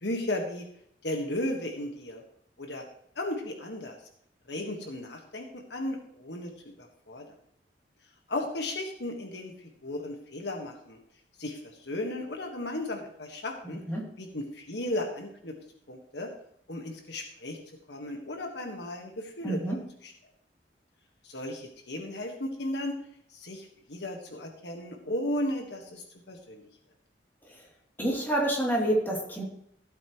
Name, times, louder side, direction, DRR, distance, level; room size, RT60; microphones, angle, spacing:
voice 1, 0.0-0.7 1.0-2.2 2.6-2.8 3.1-4.0 4.5-7.3 8.3-11.0 11.4-13.8 14.2-15.5 15.9-16.3 16.7-17.6 17.9-19.8 20.0-20.1 21.2-23.0 23.3-26.6, left 1 dB, 70° left, 3 dB, 1.6 m, -35 dB
voice 2, 13.6-14.1 19.4-19.8 27.4-27.6 28.0-29.4, right 1 dB, 10° left, -2 dB, 2.9 m, -28 dB
15.5 x 8.5 x 3.1 m, 0.71 s
head